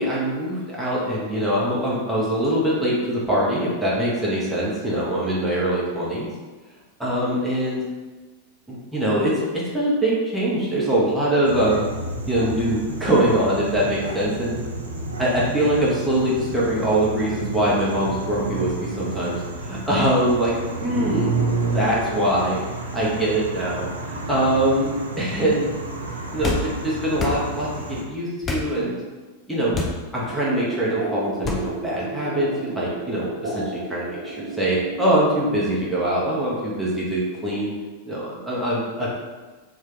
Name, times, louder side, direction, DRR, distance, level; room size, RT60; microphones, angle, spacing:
voice 1, 0.0-6.3 7.0-7.8 8.7-11.9 12.2-14.6 15.2-21.3 21.7-22.6 22.9-25.7 26.3-29.0 29.5-29.8 30.1-33.6 33.9-37.7 38.1-39.2, right 1 dB, ahead, -8 dB, 0.9 m, -23 dB
sound 1, 11.4-28.0, right 3 dB, 75° right, 0.4 m, -31 dB
sound 2, 26.4-26.7 27.2-27.4 28.4-28.7 29.7-30.0 31.4-31.6, left 3 dB, 25° left, 0.5 m, -26 dB
sound 3, 30.3-35.8, right 3 dB, 40° right, 0.8 m, -33 dB
2.6 x 2.4 x 3.8 m, 1.3 s
figure-of-eight pair, 90°, 0 cm